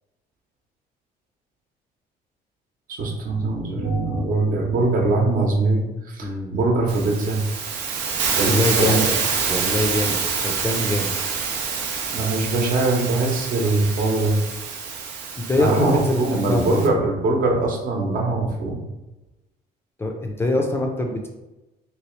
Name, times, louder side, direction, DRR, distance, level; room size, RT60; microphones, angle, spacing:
voice 1, 2.9-7.4 8.3-9.1 12.1-14.3 15.6-18.8, right 2 dB, 55° right, 0 dB, 0.9 m, -22 dB
voice 2, 6.2-6.6 8.4-9.1 9.5-11.2 15.4-16.9 20.0-21.3, left 1 dB, 15° left, 1 dB, 0.4 m, -24 dB
Hiss, 6.9-16.9, right 6 dB, 85° right, 0.6 m, -27 dB
3.2 x 2.9 x 3.1 m, 1.0 s
cardioid pair, 110°, 17 cm